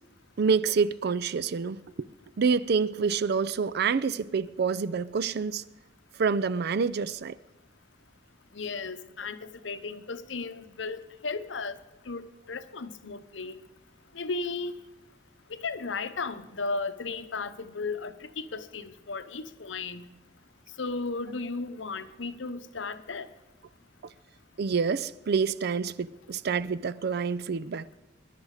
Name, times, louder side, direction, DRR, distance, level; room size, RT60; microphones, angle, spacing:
voice 1, 0.4-2.1 2.4-5.6 6.2-7.4 24.6-28.0, right 5 dB, 60° right, 0.4 m, -27 dB
voice 2, 8.5-11.8 12.1-13.6 14.1-14.7 15.5-20.1 20.8-23.3, left 4 dB, 75° left, 0.8 m, -35 dB
21.5 x 11.0 x 4.9 m
head